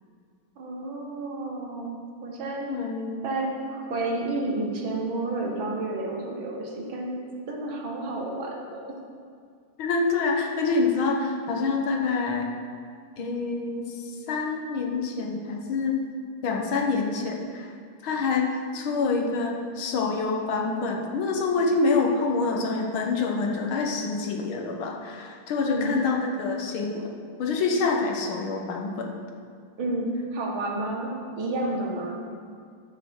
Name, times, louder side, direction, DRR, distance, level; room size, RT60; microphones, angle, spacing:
voice 1, 0.6-2.7 3.2-9.0 25.7-26.1 29.8-32.2, right 2 dB, 65° right, 0 dB, 2.0 m, -31 dB
voice 2, 2.7-3.2 9.8-12.5 13.2-16.0 16.4-17.7 18.0-27.1 27.4-29.1, left 4 dB, 70° left, 1 dB, 1.8 m, -26 dB
13.5 x 6.5 x 4.5 m, 2.1 s
omnidirectional pair, 2.4 m